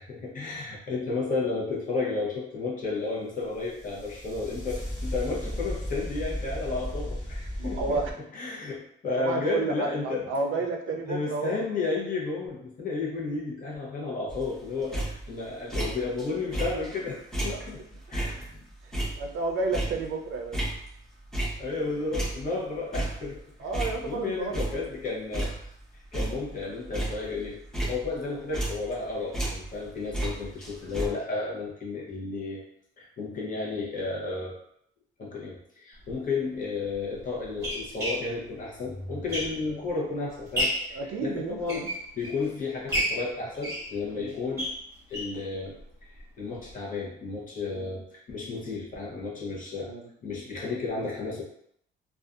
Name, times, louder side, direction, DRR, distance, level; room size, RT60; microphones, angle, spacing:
voice 1, 0.0-8.0 8.3-10.3 11.1-17.8 18.1-18.6 21.6-23.4 24.0-25.5 26.1-27.6 27.9-32.6 33.0-34.6 35.2-44.7 45.1-49.9 50.2-51.4, left 3 dB, 40° left, -4 dB, 0.8 m, -32 dB
sound 1, 3.5-8.1, equal, 20° left, 1.1 m, -35 dB
voice 2, 7.6-8.1 9.2-11.6 14.9-15.0 17.5-17.7 19.2-20.6 23.6-24.7 39.8-39.9 40.9-41.9 44.1-44.3 47.7-48.0 49.9-50.1, right 3 dB, 85° right, 3 dB, 0.4 m, -31 dB
sound 2, 14.3-16.2 16.5-21.8 22.1-24.2 24.5-25.0 25.3-29.0 29.3-31.1, right 1 dB, 5° left, 0.7 m, -33 dB
sound 3, 36.0-36.1 36.9-39.9 40.3-41.0 41.5-42.5 42.9-45.4 45.8-45.9 46.2-46.3 46.6-46.7, equal, 15° right, 1.1 m, -32 dB
2.6 x 2.3 x 2.4 m, 0.71 s
cardioid pair, 130°, 20 cm